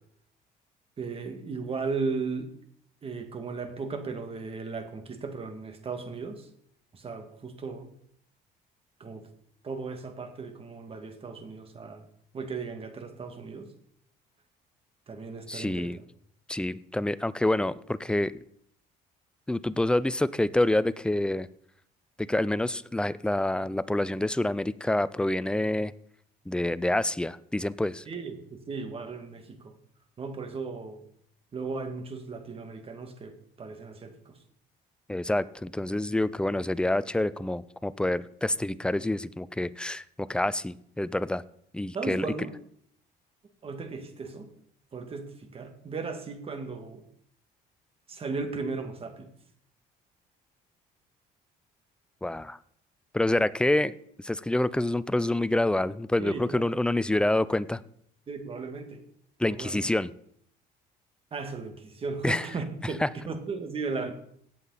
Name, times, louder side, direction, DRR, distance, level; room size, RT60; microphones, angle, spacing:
voice 1, 1.0-2.5 3.0-6.5 6.9-7.9 9.0-9.2 9.6-12.1 12.3-13.7 15.1-15.9 28.1-29.7 30.2-31.0 31.5-34.4 41.9-42.6 43.6-44.5 44.9-47.0 48.1-49.3 56.2-56.6 58.3-59.0 59.5-59.8 61.3-64.1, right 4 dB, 35° right, 6 dB, 1.9 m, -36 dB
voice 2, 15.5-16.0 16.5-18.3 19.5-21.5 22.2-25.9 26.5-28.0 35.1-41.4 41.7-42.3 52.2-52.6 53.1-53.9 54.2-57.8 59.4-60.1 62.2-62.5 63.0-63.1, left 1 dB, 5° left, 16 dB, 0.4 m, -27 dB
17.0 x 7.4 x 4.1 m, 0.67 s
cardioid pair, 110°, 17 cm